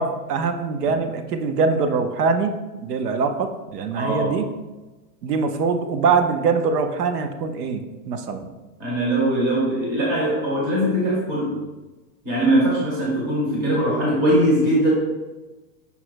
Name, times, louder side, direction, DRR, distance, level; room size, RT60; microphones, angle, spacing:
voice 1, 0.0-4.5 5.2-8.5, right 4 dB, 90° right, 7 dB, 0.7 m, -23 dB
voice 2, 4.0-4.4 8.8-11.6 12.2-14.9, right 1 dB, 15° right, -6 dB, 0.6 m, -21 dB
5.4 x 2.1 x 4.5 m, 1.1 s
supercardioid pair, 175°, 46 cm